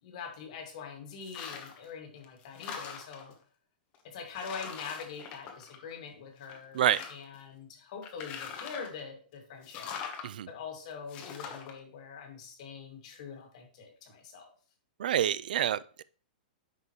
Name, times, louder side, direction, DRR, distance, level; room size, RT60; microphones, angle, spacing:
voice 1, 0.0-3.3 4.0-9.9 10.5-14.5, left 6 dB, 45° left, 2.0 m, -44 dB
sound 1, 1.2-1.9 2.2-3.3 3.9-4.0 4.4-6.1 6.4-7.4 8.0-9.0 9.6-10.3 11.1-11.7, left 7 dB, 25° left, 1.1 m, -42 dB
voice 2, 15.0-16.0, right 10 dB, 65° right, 0.3 m, -28 dB
10.0 x 5.5 x 3.1 m
hypercardioid pair, 170°, 5 cm